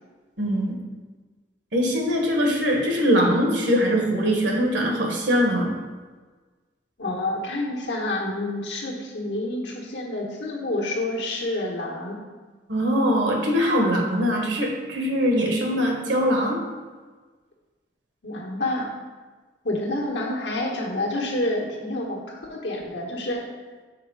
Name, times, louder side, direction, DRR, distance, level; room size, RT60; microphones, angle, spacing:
voice 1, 0.4-0.8 1.7-5.7 12.7-16.6, equal, 85° right, 0 dB, 1.4 m, -22 dB
voice 2, 7.0-12.2 18.2-18.9 19.6-23.4, left 1 dB, 90° left, -2 dB, 1.3 m, -28 dB
5.9 x 4.4 x 4.7 m, 1.4 s
head